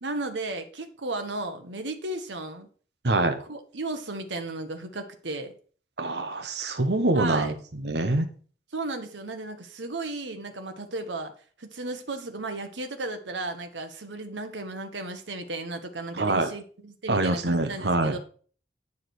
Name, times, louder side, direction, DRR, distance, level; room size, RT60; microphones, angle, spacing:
voice 1, 0.0-2.7 3.4-5.5 7.1-7.5 8.7-11.3 11.6-18.2, right 2 dB, 85° right, 6 dB, 1.3 m, -34 dB
voice 2, 3.0-3.4 6.0-7.5 7.8-8.2 16.1-16.5 17.1-18.1, right 2 dB, 65° right, 8 dB, 1.2 m, -24 dB
9.8 x 4.9 x 4.7 m, 0.42 s
head